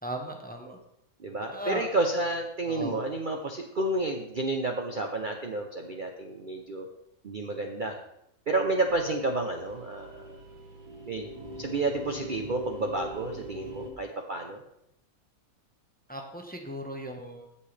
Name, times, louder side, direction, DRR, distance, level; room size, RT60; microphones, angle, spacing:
voice 1, 0.0-0.8 1.5-1.9 2.7-3.0 16.1-17.5, equal, 5° left, 3 dB, 0.9 m, -37 dB
voice 2, 1.2-6.9 7.2-8.0 8.5-10.4 11.1-11.3 11.6-14.6, right 2 dB, 45° right, 3 dB, 0.7 m, -30 dB
sound 1, 8.9-13.9, right 1 dB, 90° right, 1.8 m, -43 dB
16.5 x 5.6 x 3.3 m, 0.80 s
omnidirectional pair, 1.5 m